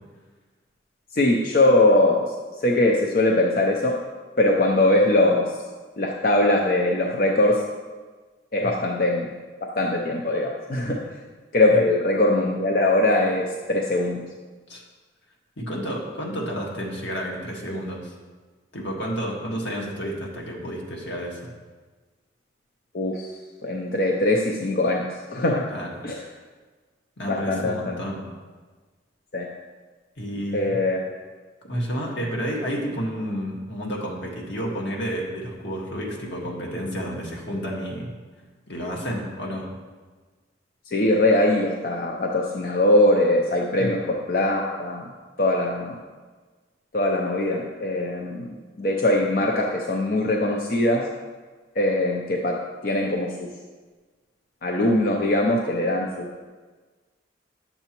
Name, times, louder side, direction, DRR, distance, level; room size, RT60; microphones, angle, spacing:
voice 1, 1.1-2.3 2.6-4.0 4.4-5.5 6.0-7.6 8.5-9.3 9.6-11.0 11.5-14.2 22.9-23.3 23.6-25.0 25.3-25.6 26.0-26.3 27.3-28.0 29.3-29.5 30.5-31.0 40.9-45.1 45.4-46.0 46.9-51.0 51.8-52.6 52.8-53.5 54.6-56.5, left 1 dB, 50° left, 0 dB, 0.5 m, -21 dB
voice 2, 15.6-18.1 18.7-21.5 25.7-25.9 27.2-28.2 30.2-30.8 31.6-38.1 38.7-39.7 43.8-43.9, equal, 80° left, -1 dB, 1.6 m, -30 dB
9.3 x 6.8 x 3.0 m, 1.4 s
head